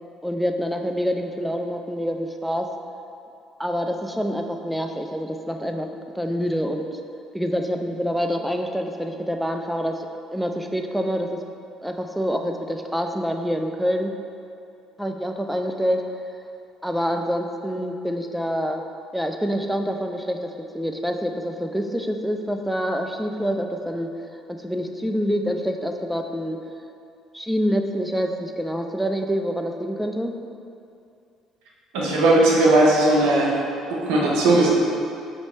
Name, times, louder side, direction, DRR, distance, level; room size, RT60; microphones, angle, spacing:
voice 1, 0.2-2.7 3.6-7.0 7.3-11.3 11.8-14.1 15.0-16.0 16.8-18.8 19.1-24.1 24.5-26.6 27.3-30.3, equal, ahead, 4 dB, 0.3 m, -26 dB
voice 2, 31.9-33.5 33.9-34.7, right 2 dB, 70° right, -4 dB, 0.7 m, -17 dB
2.9 x 2.8 x 4.3 m, 2.6 s
hypercardioid pair, 55°, 0 cm